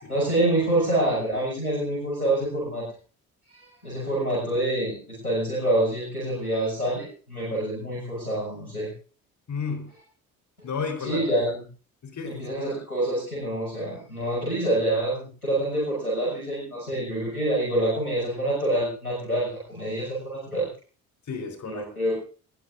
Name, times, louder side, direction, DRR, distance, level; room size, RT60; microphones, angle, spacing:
voice 1, 0.1-2.9 3.5-8.9 11.0-11.6 12.2-20.7 21.6-22.2, right 1 dB, 90° left, -8 dB, 6.8 m, -26 dB
voice 2, 9.5-9.9 10.6-11.3 12.0-12.8 21.3-21.9, left 5 dB, 40° left, 6 dB, 4.5 m, -32 dB
29.5 x 15.0 x 2.7 m, 0.39 s
figure-of-eight pair, 45°, 43 cm